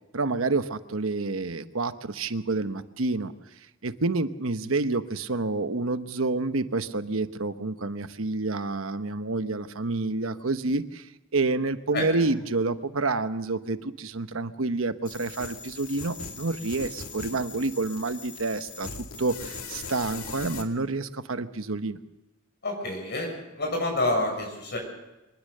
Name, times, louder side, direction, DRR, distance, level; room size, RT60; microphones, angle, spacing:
voice 1, 0.1-3.3 3.8-18.9 19.2-22.0, right 3 dB, 70° right, 10 dB, 1.1 m, -28 dB
sound 1, 15.1-20.6, left 4 dB, 75° left, 2.3 m, -40 dB
voice 2, 22.6-24.8, left 2 dB, 55° left, 2 dB, 6.6 m, -28 dB
24.0 x 20.5 x 6.7 m, 1.0 s
head